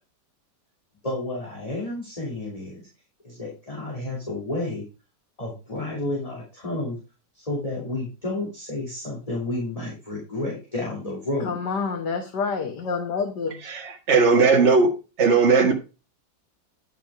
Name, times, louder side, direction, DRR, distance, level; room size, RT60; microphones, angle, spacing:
voice 1, 1.0-2.9 3.2-4.8 5.4-7.0 7.3-11.6, left 2 dB, 20° left, 3.1 m, -31 dB
voice 2, 11.4-13.6, left 5 dB, 85° left, 1.8 m, -28 dB
voice 3, 13.6-14.9 15.2-15.7, right 4 dB, 45° right, 1.8 m, -18 dB
10.0 x 5.9 x 4.8 m
omnidirectional pair, 1.8 m